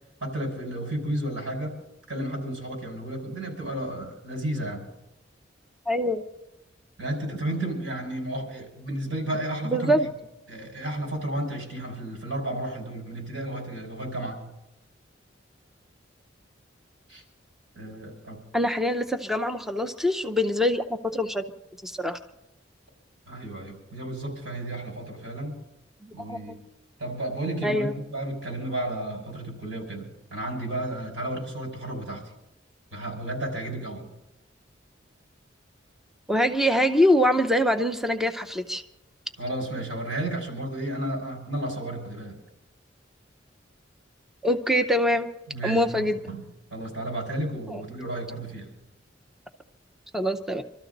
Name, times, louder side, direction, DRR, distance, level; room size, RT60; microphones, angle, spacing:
voice 1, 0.2-1.8 2.1-4.9 7.0-9.9 10.5-14.5 17.1-17.2 17.8-18.4 23.3-25.6 26.1-26.6 27.0-32.2 32.9-34.1 39.4-42.4 45.5-46.4 46.7-48.7, right 1 dB, 85° right, 0 dB, 5.3 m, -32 dB
voice 2, 5.9-6.2 9.6-10.1 18.5-21.4 21.8-22.2 26.0-26.6 27.6-27.9 36.3-38.8 44.4-45.3 45.6-46.2 47.7-47.8 50.1-50.6, equal, ahead, 6 dB, 0.6 m, -24 dB
25.5 x 13.0 x 4.0 m, 0.94 s
head